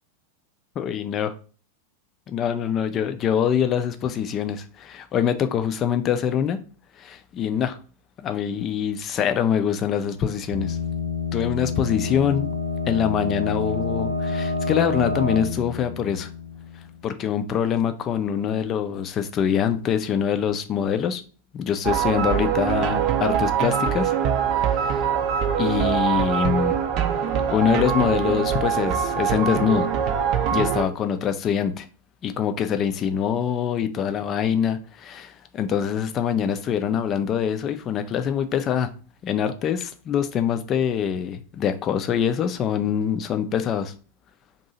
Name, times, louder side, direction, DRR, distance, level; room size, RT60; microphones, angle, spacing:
voice 1, 0.8-1.3 2.3-6.6 7.0-7.8 8.2-10.8 11.3-12.5 12.9-16.3 17.0-21.2 21.5-24.1 24.8-25.0 25.6-26.8 27.5-29.9 30.5-31.9 32.2-38.9 39.2-43.9, left 8 dB, 30° left, 0.4 m, -24 dB
sound 1, 10.5-17.1, left 3 dB, 85° left, 0.7 m, -28 dB
sound 2, 21.8-30.8, right 8 dB, 40° right, 0.4 m, -23 dB
2.7 x 2.6 x 4.0 m
figure-of-eight pair, 90°, 0 cm